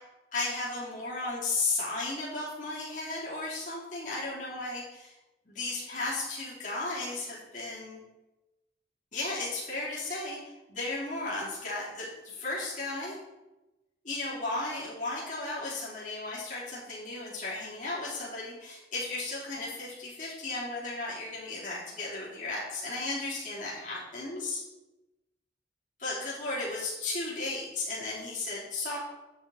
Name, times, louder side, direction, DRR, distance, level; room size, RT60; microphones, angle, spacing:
voice 1, 0.3-5.1 5.5-8.0 9.1-13.2 14.0-24.6 26.0-29.0, left 2 dB, 40° left, -7 dB, 3.9 m, -35 dB
10.5 x 7.9 x 4.4 m, 1.0 s
head